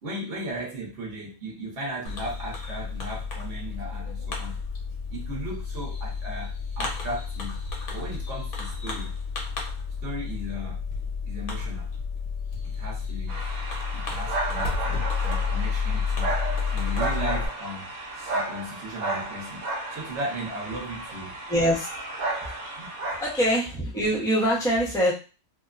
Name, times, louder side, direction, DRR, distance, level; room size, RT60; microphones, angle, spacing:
voice 1, 0.0-4.6 5.1-7.6 7.9-9.1 10.0-10.8 11.3-11.9 12.7-13.4 13.9-16.3 16.7-17.9 18.1-21.4 22.8-22.9, equal, 55° right, -3 dB, 1.0 m, -36 dB
Fireworks, 2.1-17.5, left 5 dB, 85° left, 1.2 m, -31 dB
sound 1, 13.3-23.5, right 2 dB, 80° right, 1.0 m, -33 dB
voice 2, 21.5-21.9 22.4-22.7 23.2-25.1, equal, 5° left, -4 dB, 0.4 m, -24 dB
2.8 x 2.1 x 2.4 m, 0.32 s
omnidirectional pair, 1.5 m